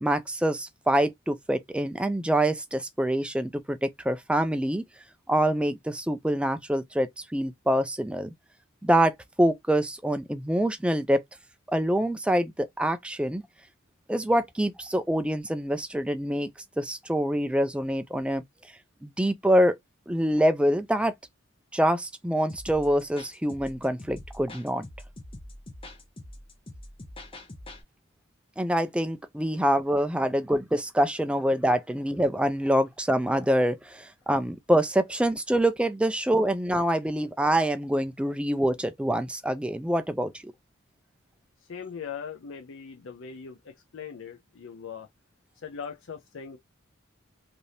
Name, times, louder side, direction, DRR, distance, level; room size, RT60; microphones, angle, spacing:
voice 1, 0.0-4.8 5.3-8.3 8.8-9.1 9.4-11.2 11.7-13.4 14.1-16.5 16.8-18.4 19.0-19.8 20.1-21.1 21.7-24.8 28.6-40.5, right 1 dB, 5° right, 0.3 m, -25 dB
sound 1, 22.5-27.8, left 1 dB, 25° left, 0.7 m, -44 dB
voice 2, 41.6-45.1 45.6-46.6, left 6 dB, 70° left, 0.5 m, -40 dB
3.2 x 2.6 x 2.6 m
head